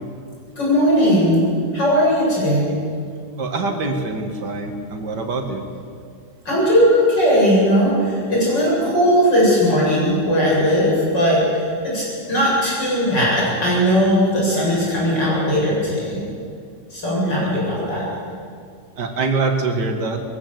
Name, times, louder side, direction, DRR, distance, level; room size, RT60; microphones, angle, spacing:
voice 1, 0.6-1.4 1.7-2.7 6.5-12.0 12.3-16.3 16.9-18.0, equal, 85° left, -6 dB, 8.8 m, -18 dB
voice 2, 3.4-5.6 17.3-17.5 19.0-20.2, right 3 dB, 75° right, 4 dB, 2.5 m, -24 dB
22.5 x 16.0 x 7.8 m, 2.2 s
omnidirectional pair, 1.9 m